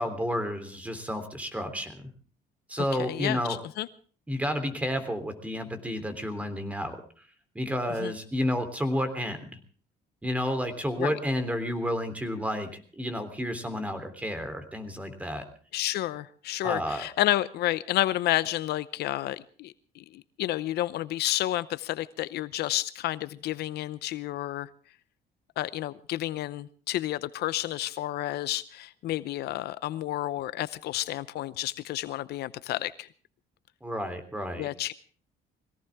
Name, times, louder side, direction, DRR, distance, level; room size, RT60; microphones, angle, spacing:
voice 1, 0.0-2.0 2.7-3.6 4.3-7.0 7.6-9.6 10.2-12.7 13.0-15.4 16.6-17.1 33.8-34.7, equal, 10° right, 9 dB, 3.4 m, -31 dB
voice 2, 2.8-3.9 8.0-8.1 11.0-11.2 15.7-24.7 25.6-33.1 34.6-34.9, left 14 dB, 75° left, 16 dB, 0.7 m, -30 dB
22.0 x 17.0 x 3.6 m, 0.42 s
cardioid pair, 110°, 17 cm